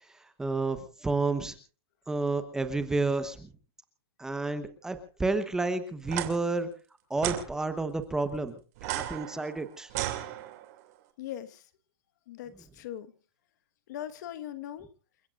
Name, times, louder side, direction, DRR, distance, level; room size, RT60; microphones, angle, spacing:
voice 1, 0.4-1.5 2.1-3.5 4.2-6.7 7.1-9.9, right 3 dB, 5° right, 1.0 m, -30 dB
sound 1, 6.0-6.3 7.2-7.4 8.8-10.8, right 15 dB, 40° right, 2.6 m, -34 dB
voice 2, 11.2-11.7 12.3-13.1 13.9-14.9, left 11 dB, 45° left, 1.4 m, -40 dB
29.0 x 15.5 x 2.5 m
hypercardioid pair, 165°, 13 cm